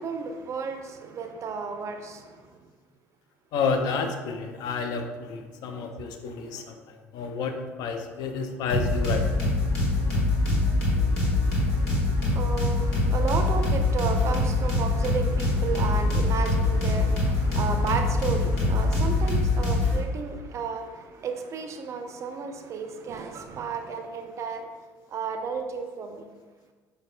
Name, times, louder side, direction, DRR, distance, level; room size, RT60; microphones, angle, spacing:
voice 1, 0.0-2.2 11.5-24.7 25.1-26.2, right 5 dB, 40° right, 5 dB, 0.4 m, -33 dB
voice 2, 3.5-6.8 7.1-9.2, left 5 dB, 55° left, 5 dB, 0.4 m, -30 dB
sound 1, 8.7-20.0, left 2 dB, 75° left, 1.1 m, -24 dB
5.1 x 2.1 x 2.4 m, 1.4 s
hypercardioid pair, 60°, 8 cm